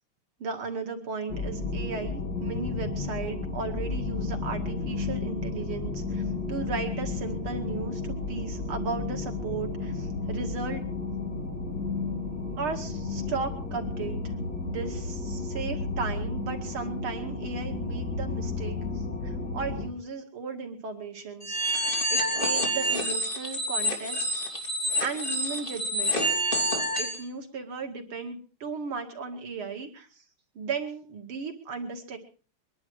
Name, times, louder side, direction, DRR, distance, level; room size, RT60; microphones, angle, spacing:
voice 1, 0.4-6.2 6.5-10.8 12.6-14.2 14.6-18.8 19.2-24.2 25.0-26.2 27.0-30.1 30.6-32.2, right 5 dB, 90° right, 4 dB, 3.0 m, -35 dB
sound 1, 1.3-19.9, left 3 dB, 50° left, 2.9 m, -32 dB
sound 2, 21.4-27.2, equal, 25° left, 3.3 m, -28 dB
23.5 x 11.0 x 4.8 m, 0.39 s
omnidirectional pair, 2.3 m